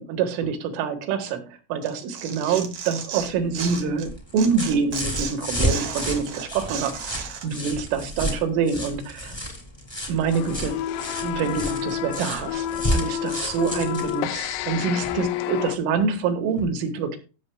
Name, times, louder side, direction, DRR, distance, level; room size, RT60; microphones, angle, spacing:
voice 1, 0.0-9.4 10.1-10.9 11.2-17.2, right 6 dB, 75° right, 6 dB, 4.0 m, -26 dB
Tearing, 1.8-4.1 4.4-7.5, right 7 dB, 60° right, 2.3 m, -34 dB
sound 1, 3.2-15.2 16.6-16.7, equal, 15° left, 0.9 m, -32 dB
sound 2, 10.3-15.8, left 12 dB, 80° left, 2.7 m, -29 dB
16.0 x 7.2 x 2.3 m, 0.32 s
omnidirectional pair, 5.8 m